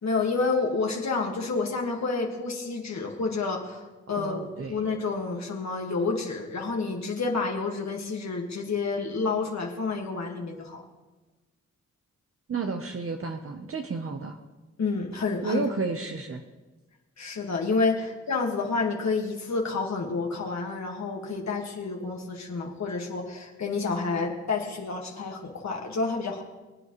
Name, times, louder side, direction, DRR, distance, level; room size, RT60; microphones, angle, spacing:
voice 1, 0.0-4.4 4.7-10.8 14.8-15.6 17.2-26.4, left 4 dB, 65° left, 0 dB, 1.8 m, -29 dB
voice 2, 4.2-4.8 12.5-14.4 15.4-16.4, right 4 dB, 50° right, 4 dB, 1.0 m, -32 dB
23.5 x 8.4 x 3.1 m, 1.2 s
cardioid pair, 60°, 29 cm